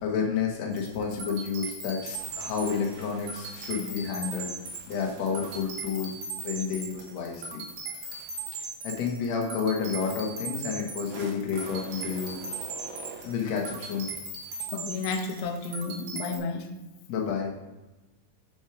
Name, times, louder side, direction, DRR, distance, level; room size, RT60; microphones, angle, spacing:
voice 1, 0.0-4.5 4.9-6.1 6.4-7.6 8.8-12.4 13.2-14.1 17.1-17.5, left 6 dB, 60° left, 0 dB, 2.0 m, -30 dB
sound 1, 0.7-16.4, right 3 dB, 60° right, 2.2 m, -39 dB
sound 2, 2.1-9.1 9.8-15.4, right 4 dB, 85° right, 1.4 m, -50 dB
voice 2, 14.7-16.7, left 4 dB, 85° left, 5 dB, 2.7 m, -32 dB
6.5 x 5.8 x 5.0 m, 1.1 s
omnidirectional pair, 4.6 m